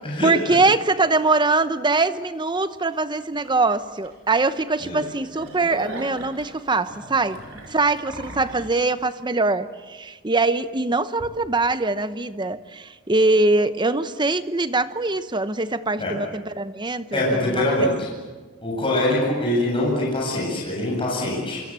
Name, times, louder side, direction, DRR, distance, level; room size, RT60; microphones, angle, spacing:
voice 1, 0.2-7.4 7.7-17.2 17.5-17.9, right 3 dB, 20° right, 0.9 m, -22 dB
sound 1, 3.4-3.6 4.0-4.1 4.5-4.6 5.0-8.7, right 1 dB, 65° right, 5.7 m, -38 dB
voice 2, 17.1-18.1 18.6-21.6, left 1 dB, 25° left, 7.9 m, -23 dB
27.5 x 25.5 x 7.6 m
head